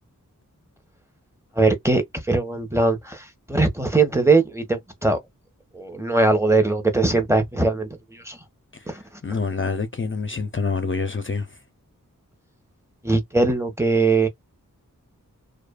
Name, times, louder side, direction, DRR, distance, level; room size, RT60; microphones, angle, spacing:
voice 1, 1.5-5.2 5.7-8.4 8.9-9.4 13.0-14.3, right 3 dB, 10° right, 0.9 m, -21 dB
voice 2, 9.2-11.6, left 4 dB, 40° left, 0.5 m, -27 dB
2.7 x 2.4 x 2.2 m
wide cardioid pair, 50°, 33 cm